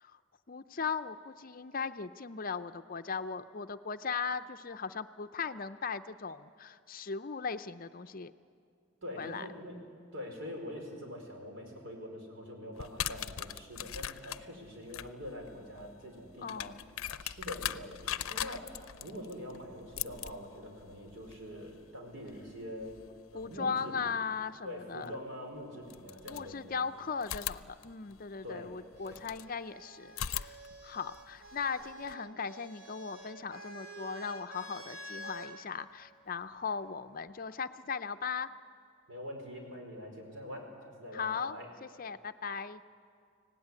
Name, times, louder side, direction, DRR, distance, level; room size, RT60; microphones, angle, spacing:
voice 1, 0.5-8.3 9.2-9.5 16.4-16.7 23.3-25.2 26.3-30.6 30.8-38.5 41.1-41.6 41.8-42.8, left 5 dB, 45° left, 11 dB, 0.6 m, -38 dB
voice 2, 9.0-9.8 10.1-16.7 17.2-22.9 23.3-24.1 24.6-26.9 28.4-28.7 29.0-29.2 39.1-41.7, left 1 dB, 65° right, 1 dB, 5.0 m, -44 dB
sound 1, 12.8-23.6 25.0-25.1 25.8-26.8 27.2-29.5 30.1-32.1, left 10 dB, 90° left, 0.6 m, -42 dB
sound 2, 29.0-35.6 36.7-37.3, right 1 dB, 45° right, 2.4 m, -49 dB
24.5 x 17.5 x 9.8 m, 2.3 s
head